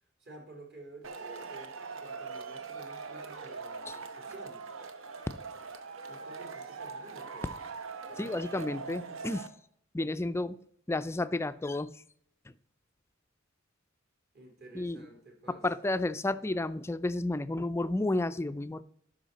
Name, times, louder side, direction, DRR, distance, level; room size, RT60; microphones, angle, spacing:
voice 1, 0.2-4.6 6.1-7.5 8.1-8.8 14.3-15.7, right 2 dB, 55° right, 2 dB, 3.0 m, -52 dB
Male speech man speaking / Shout / Clapping, 1.0-9.5, right 4 dB, 70° right, 0.8 m, -42 dB
voice 2, 8.2-9.5 9.9-10.6 10.9-11.9 14.7-15.1 15.5-18.8, left 2 dB, 15° left, 14 dB, 0.4 m, -31 dB
12.0 x 5.6 x 4.0 m, 0.65 s
head